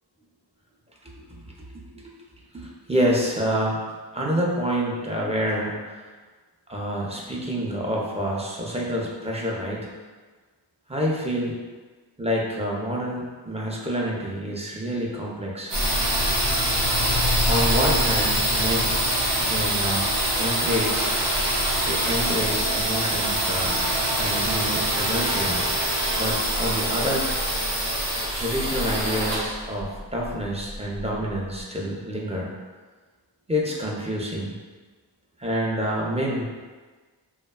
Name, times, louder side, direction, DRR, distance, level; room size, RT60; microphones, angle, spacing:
voice 1, 2.5-3.8 4.1-5.8 6.7-9.9 10.9-11.6 12.2-15.7 17.5-18.9 19.3-20.1 20.4-21.1 21.8-23.7 24.2-25.6 26.2-27.3 28.3-32.5 33.5-34.6 35.4-36.5, equal, 15° right, -3 dB, 0.4 m, -27 dB
sound 1, 15.7-31.3, right 1 dB, 75° right, 0.8 m, -24 dB
2.7 x 2.2 x 2.2 m, 1.4 s
wide cardioid pair, 45°, 44 cm